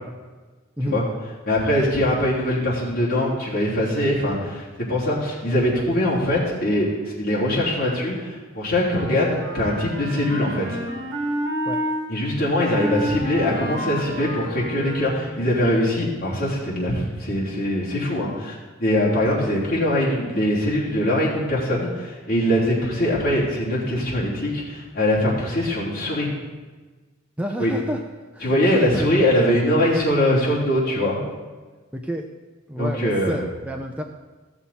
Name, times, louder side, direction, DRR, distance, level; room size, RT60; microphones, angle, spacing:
voice 1, 1.5-10.8 12.1-26.3 27.6-27.7 28.4-31.2 32.8-33.4, left 1 dB, 45° left, -7 dB, 3.1 m, -22 dB
Wind instrument woodwind instrument, 8.8-12.0 12.7-15.4, right 1 dB, 55° right, 1.9 m, -29 dB
voice 2, 27.4-28.0 28.3-29.1 31.9-32.3 32.7-34.0, equal, 5° right, 2 dB, 0.5 m, -29 dB
15.0 x 7.0 x 4.3 m, 1.3 s
head